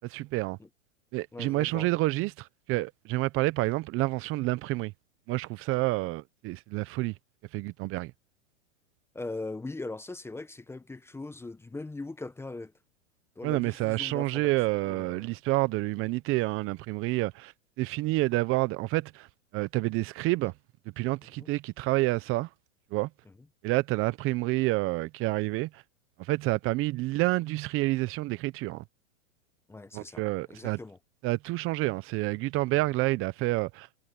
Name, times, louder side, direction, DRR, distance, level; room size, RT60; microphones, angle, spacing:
voice 1, 0.0-0.6 1.1-4.9 5.3-7.1 7.5-8.1 13.4-17.5 17.8-19.3 19.5-20.5 21.0-22.5 22.9-23.1 23.6-25.8 26.2-28.8 29.9-30.8 31.2-33.9, right 20 dB, 35° right, 0.9 m, -28 dB
voice 2, 1.3-1.9 9.1-12.7 13.4-14.5 14.8-15.4 21.4-21.5 29.7-30.2 30.5-31.0, left 2 dB, 5° left, 1.0 m, -40 dB
hypercardioid pair, 125°, 37 cm